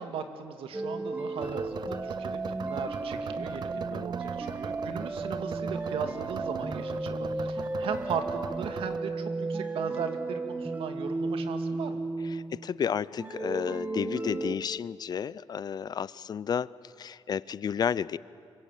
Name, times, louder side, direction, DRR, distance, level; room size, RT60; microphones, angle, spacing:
voice 1, 0.0-12.0, right 6 dB, 90° right, 8 dB, 2.2 m, -37 dB
sound 1, 0.7-12.7 13.2-14.6, right 3 dB, 20° right, 1.3 m, -34 dB
sound 2, 1.4-9.0, right 7 dB, 50° right, 0.6 m, -41 dB
voice 2, 3.7-4.1 12.2-18.2, left 7 dB, 50° left, 20 dB, 0.6 m, -32 dB
26.0 x 23.5 x 9.1 m, 2.3 s
cardioid pair, 125°, 9 cm